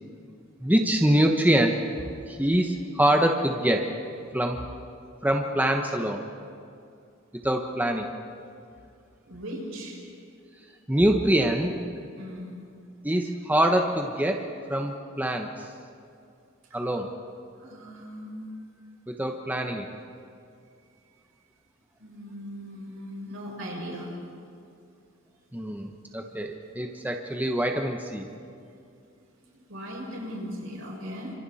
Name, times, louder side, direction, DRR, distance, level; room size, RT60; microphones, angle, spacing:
voice 1, 0.6-1.8 2.3-3.9 4.3-4.6 5.2-6.2 7.3-8.1 10.9-11.8 13.0-15.7 16.7-17.1 19.1-19.9 25.5-28.3, right 1 dB, 10° right, 3 dB, 1.1 m, -24 dB
voice 2, 9.2-10.0 12.1-12.5 17.6-18.5 22.0-24.1 29.7-31.3, equal, 70° right, -2 dB, 6.5 m, -38 dB
29.5 x 26.0 x 4.3 m, 2.4 s
head